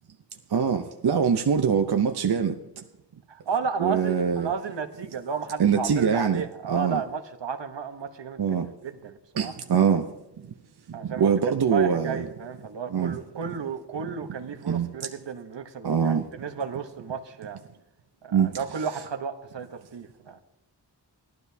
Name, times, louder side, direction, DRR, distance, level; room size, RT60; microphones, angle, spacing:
voice 1, 0.5-2.8 3.8-4.5 5.6-6.4 6.7-7.0 8.4-8.7 9.4-10.1 10.4-10.5 10.9-12.3 12.9-13.2 14.7-14.9 15.8-16.3 18.3-18.6, right 7 dB, 65° right, 0.7 m, -23 dB
voice 2, 3.3-8.6 8.8-9.5 10.9-17.6 18.2-20.4, right 6 dB, 80° right, 1.0 m, -33 dB
18.0 x 12.0 x 2.7 m
wide cardioid pair, 85°, 42 cm